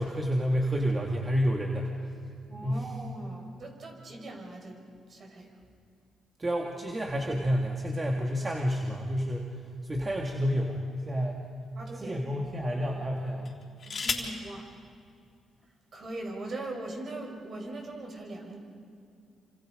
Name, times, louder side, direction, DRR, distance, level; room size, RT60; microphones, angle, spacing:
voice 1, 0.0-2.2 2.6-2.9 6.4-11.5 11.9-13.6, equal, 25° right, 1 dB, 2.4 m, -30 dB
voice 2, 2.5-4.8 5.1-5.5 11.7-12.2 13.8-14.7 15.9-18.6, right 2 dB, 50° right, 2 dB, 5.7 m, -40 dB
sound 1, 9.6-10.9 11.6-11.8 13.4-14.4 15.6-15.7 16.0-16.4, left 5 dB, 45° left, 3.6 m, -36 dB
28.5 x 26.5 x 5.3 m, 2.4 s
cardioid pair, 80°, 0 cm